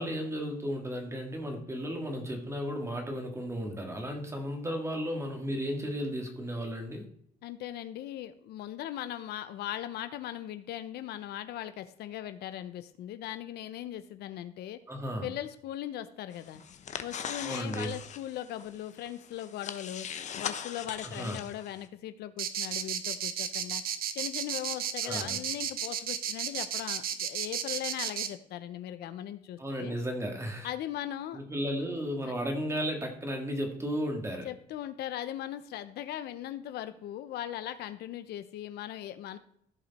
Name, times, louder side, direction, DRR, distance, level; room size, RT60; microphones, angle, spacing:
voice 1, 0.0-7.1 14.9-15.3 17.4-17.9 21.0-21.4 25.0-25.4 29.6-30.7 31.3-34.5, equal, 15° right, 3 dB, 2.0 m, -34 dB
voice 2, 7.4-14.8 15.2-16.6 17.0-20.1 20.4-23.8 24.1-30.0 30.6-31.4 32.2-32.3 34.4-39.4, left 12 dB, 75° left, 11 dB, 0.7 m, -39 dB
sound 1, 16.3-21.9, left 8 dB, 45° left, 0.9 m, -41 dB
sound 2, 22.4-28.3, right 9 dB, 60° right, 1.0 m, -33 dB
14.5 x 5.0 x 4.2 m, 0.68 s
cardioid pair, 110°, 17 cm